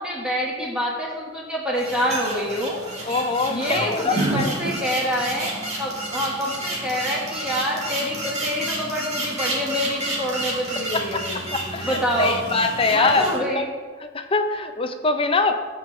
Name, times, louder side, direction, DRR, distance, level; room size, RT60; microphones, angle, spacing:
voice 1, 0.0-2.8 3.5-11.4 11.8-12.4 12.9-13.8, equal, 5° right, -5 dB, 1.5 m, -26 dB
sound 1, 1.8-13.4, right 2 dB, 35° right, 2.1 m, -30 dB
voice 2, 3.1-4.6 10.9-11.2 11.5-13.7 14.1-15.5, left 3 dB, 25° left, 7 dB, 0.6 m, -23 dB
15.0 x 5.4 x 3.2 m, 1.5 s
head